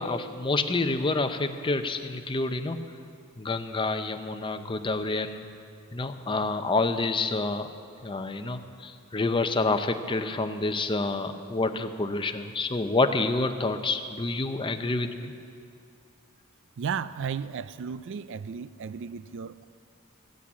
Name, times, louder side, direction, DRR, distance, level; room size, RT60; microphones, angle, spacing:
voice 1, 0.0-2.8 3.4-5.4 5.9-7.7 8.0-15.3, left 3 dB, 25° left, 8 dB, 0.7 m, -28 dB
voice 2, 16.8-19.7, right 6 dB, 60° right, 15 dB, 0.4 m, -34 dB
15.0 x 8.6 x 8.4 m, 2.4 s
head